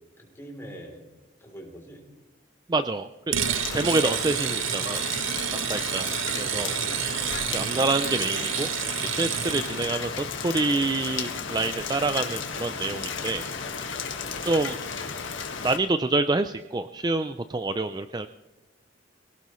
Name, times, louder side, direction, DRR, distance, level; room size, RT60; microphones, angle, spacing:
voice 1, 0.2-1.0 1.4-2.1, right 1 dB, 15° left, 0 dB, 3.4 m, -44 dB
voice 2, 2.7-3.4 3.7-5.0 5.5-6.7 7.5-8.7 9.1-13.5 14.4-14.8 15.6-18.3, right 3 dB, 20° right, 10 dB, 0.4 m, -27 dB
sound 1, 3.3-9.9, right 11 dB, 80° right, 0.6 m, -29 dB
Rain, 3.4-15.8, left 5 dB, 80° left, 1.8 m, -34 dB
23.0 x 17.5 x 3.2 m, 1.1 s
head